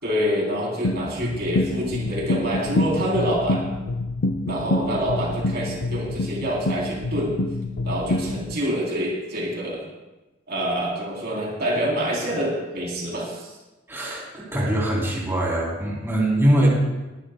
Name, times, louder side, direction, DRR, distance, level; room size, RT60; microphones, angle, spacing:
voice 1, 0.0-3.6 4.4-7.4 7.8-9.9 10.5-13.5, equal, 55° right, -3 dB, 3.4 m, -26 dB
sound 1, 0.8-8.6, left 2 dB, 65° left, 0.6 m, -26 dB
voice 2, 13.9-16.7, right 1 dB, 15° right, -5 dB, 3.4 m, -22 dB
21.5 x 11.5 x 2.2 m, 1.1 s
head